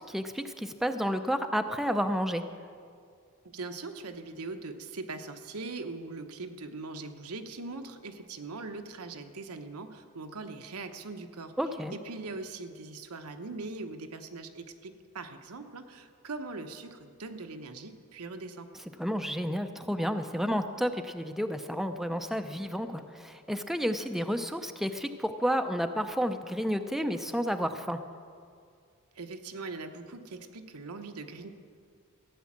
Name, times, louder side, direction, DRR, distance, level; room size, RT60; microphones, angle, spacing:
voice 1, 0.0-2.4 11.6-11.9 19.0-28.0, equal, ahead, 7 dB, 0.5 m, -31 dB
voice 2, 3.5-11.5 11.9-18.7 29.1-31.5, right 3 dB, 80° right, 7 dB, 1.0 m, -41 dB
15.0 x 9.5 x 7.4 m, 2.2 s
head